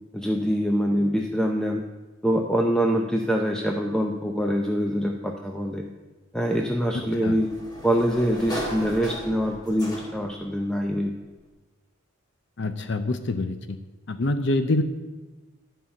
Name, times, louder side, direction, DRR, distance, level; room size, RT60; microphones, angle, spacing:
voice 1, 0.1-1.8 2.2-5.8 6.3-7.5 7.8-11.1, equal, 5° left, 2 dB, 0.5 m, -24 dB
Sliding door, 6.5-10.4, equal, 20° left, 2.0 m, -36 dB
voice 2, 6.9-7.4 12.6-13.8 14.1-14.8, left 2 dB, 60° left, 9 dB, 0.6 m, -26 dB
11.0 x 5.6 x 8.7 m, 1.2 s
head